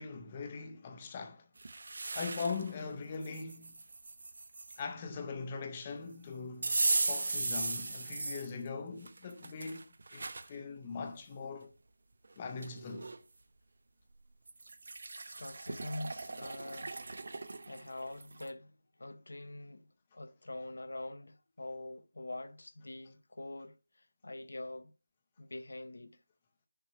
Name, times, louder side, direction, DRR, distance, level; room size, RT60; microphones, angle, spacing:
voice 1, 0.0-1.5 2.1-3.8 4.8-11.7 12.4-13.1, left 4 dB, 20° left, 0.6 m, -41 dB
sound 1, 1.6-2.7 3.2-4.8 6.6-8.5 9.0-10.5 11.1-11.2 12.2-12.3 12.6-13.2 14.5-18.5, right 3 dB, 55° right, 0.7 m, -37 dB
voice 2, 15.3-17.0 17.7-19.9 20.1-24.9 25.4-26.2, left 2 dB, 70° left, 0.7 m, -44 dB
6.7 x 3.0 x 5.7 m
figure-of-eight pair, 170°, 0 cm